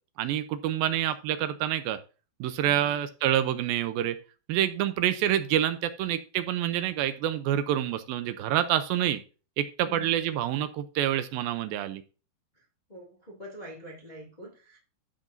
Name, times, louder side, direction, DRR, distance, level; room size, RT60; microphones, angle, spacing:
voice 1, 0.2-2.0 2.4-4.2 4.5-9.2 9.6-12.0, right 11 dB, 80° right, 2.3 m, -27 dB
voice 2, 2.6-3.0 9.8-10.2 12.5-12.6 12.9-14.8, equal, 30° left, 0.8 m, -46 dB
14.0 x 6.2 x 2.6 m
omnidirectional pair, 4.4 m